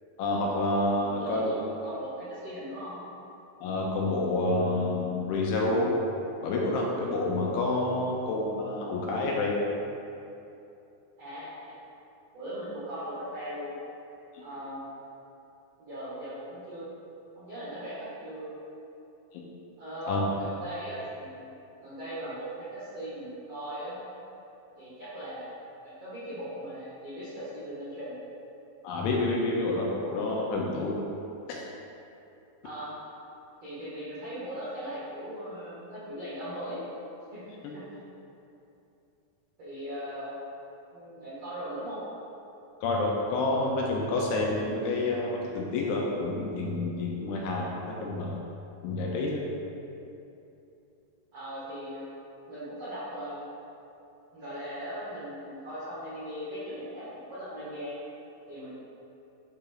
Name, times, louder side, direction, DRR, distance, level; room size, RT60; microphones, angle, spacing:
voice 1, 0.2-1.5 3.6-6.0 6.4-9.6 14.3-14.4 19.3-19.4 20.1-20.2 28.8-31.0 31.5-31.6 42.8-48.4 48.8-49.4, left 2 dB, 80° left, -2 dB, 2.9 m, -28 dB
voice 2, 1.1-3.0 11.2-11.7 12.3-13.7 14.4-14.8 15.8-16.8 17.3-18.5 19.8-21.5 21.8-24.0 24.7-25.6 25.8-28.2 32.6-33.0 33.6-36.8 37.3-37.4 37.7-37.8 39.6-40.3 40.9-42.0 51.3-52.1 52.5-53.4 54.3-57.9 58.5-58.7, equal, 80° right, -11 dB, 1.4 m, -39 dB
10.5 x 4.3 x 3.9 m, 2.8 s
omnidirectional pair, 5.8 m